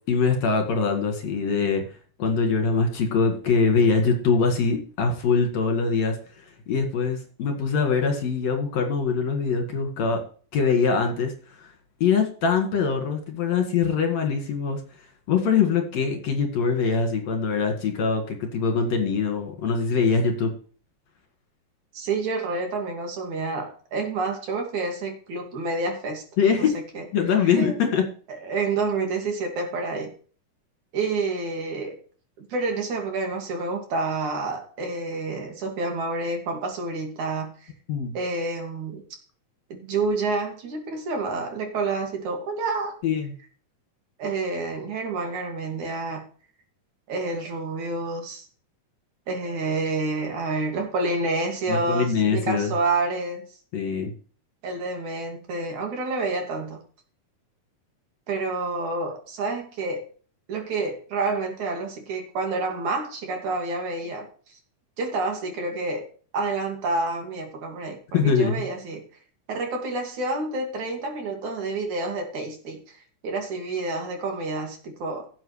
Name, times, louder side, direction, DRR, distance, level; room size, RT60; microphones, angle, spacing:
voice 1, 0.1-1.8 2.2-10.2 10.5-11.7 12.0-14.8 15.3-20.5 26.4-26.7 27.1-28.0 37.9-38.1 43.0-43.3 51.7-52.7 53.7-54.1 68.1-68.6, left 5 dB, 60° left, 4 dB, 3.0 m, -23 dB
voice 2, 21.9-26.2 26.5-26.6 27.0-27.1 27.4-27.8 28.4-30.1 30.9-32.0 32.4-37.7 38.1-39.0 39.7-43.0 44.2-46.2 47.1-48.5 49.3-53.4 54.6-56.8 58.3-60.1 60.5-64.3 65.0-66.1 66.3-69.0 69.5-75.3, right 3 dB, 65° right, 2 dB, 3.7 m, -28 dB
16.5 x 7.9 x 3.3 m, 0.42 s
omnidirectional pair, 3.7 m